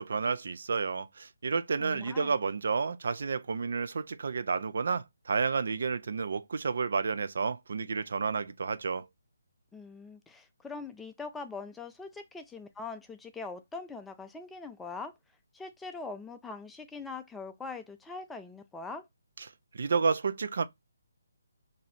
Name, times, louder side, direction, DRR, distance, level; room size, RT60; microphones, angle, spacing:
voice 1, 0.0-9.1 19.7-20.6, right 5 dB, 60° right, 0.4 m, -30 dB
voice 2, 1.8-2.3 9.7-15.1 15.5-19.0, left 4 dB, 5° left, 0.3 m, -42 dB
3.0 x 2.6 x 4.0 m
figure-of-eight pair, 150°, 0 cm